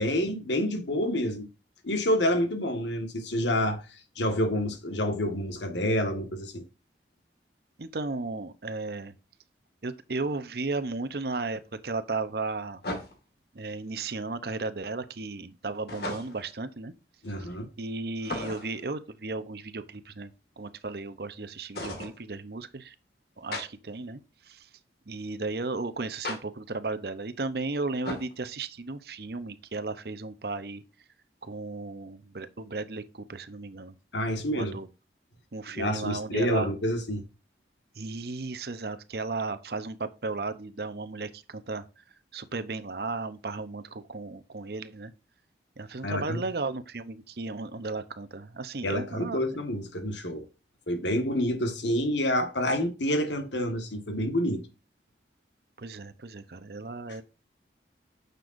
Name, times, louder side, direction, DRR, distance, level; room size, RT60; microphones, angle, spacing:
voice 1, 0.0-1.5 1.8-3.8 4.2-6.6 17.2-17.7 34.1-34.8 35.7-37.2 46.0-46.4 48.8-50.4 50.9-54.6, left 1 dB, 85° left, 1.7 m, -28 dB
voice 2, 7.8-9.1 9.8-12.8 13.5-16.9 17.4-17.5 17.8-22.9 23.4-24.7 25.1-30.8 31.4-33.9 34.5-34.9 35.5-36.7 38.0-41.8 42.3-45.1 45.8-49.4 55.8-57.2, right 3 dB, 60° right, 0.8 m, -35 dB
sound 1, 10.2-10.3 12.8-13.4 15.9-16.5 18.2-18.8 21.7-22.2 23.5-23.7 26.2-26.4 28.0-28.3, left 1 dB, 60° left, 2.0 m, -36 dB
9.6 x 6.8 x 2.6 m
head